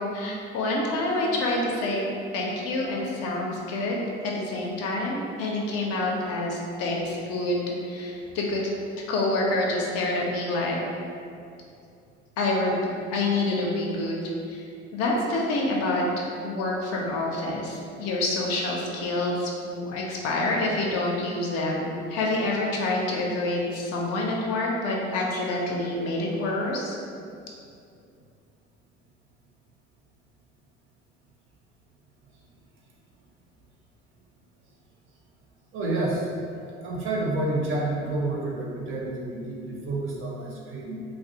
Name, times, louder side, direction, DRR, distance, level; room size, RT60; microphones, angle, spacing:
voice 1, 0.0-8.6 9.1-10.8 12.4-14.6 14.9-16.0 16.4-27.0, left 2 dB, 45° left, -2 dB, 0.5 m, -27 dB
voice 2, 35.7-36.3 36.8-41.0, right 2 dB, 40° right, -2 dB, 0.5 m, -29 dB
2.3 x 2.1 x 2.6 m, 2.5 s
figure-of-eight pair, 55°, 34 cm